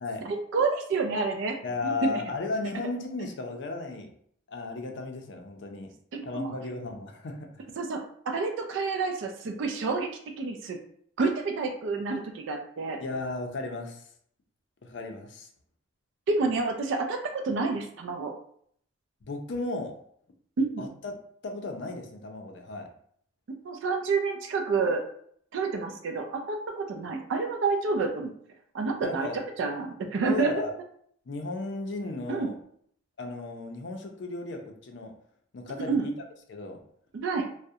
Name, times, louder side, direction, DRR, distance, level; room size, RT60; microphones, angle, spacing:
voice 1, 0.3-1.6 1.8-2.2 6.1-6.5 7.8-8.0 8.3-10.1 10.4-10.8 11.2-13.0 16.3-18.3 20.6-20.9 23.6-25.0 25.5-28.3 28.7-30.5 32.3-32.5 35.9-36.1 37.1-37.5, right 4 dB, 65° right, 3 dB, 0.3 m, -29 dB
voice 2, 1.6-4.1 4.5-5.9 6.2-7.7 13.0-14.1 14.8-15.5 19.2-20.0 20.8-21.1 21.4-22.9 29.0-29.4 30.2-30.7 31.3-32.5 33.2-35.2 35.5-36.1 36.5-36.8, left 3 dB, 60° left, 3 dB, 0.4 m, -35 dB
2.3 x 2.0 x 2.6 m, 0.64 s
head